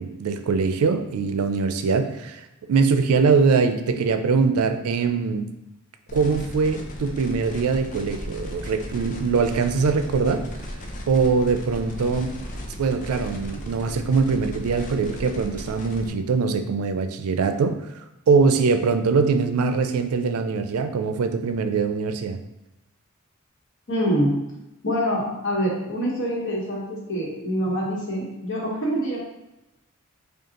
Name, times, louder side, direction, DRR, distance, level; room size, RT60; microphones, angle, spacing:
voice 1, 0.0-2.4 2.7-5.5 6.1-10.5 11.1-12.3 12.8-17.8 18.3-22.4, right 5 dB, 90° right, 8 dB, 0.4 m, -22 dB
sound 1, 6.1-16.1, equal, 35° left, 0.5 m, -36 dB
voice 2, 23.9-24.3 24.8-29.2, equal, 60° left, -4 dB, 1.2 m, -25 dB
5.1 x 2.3 x 2.8 m, 0.95 s
head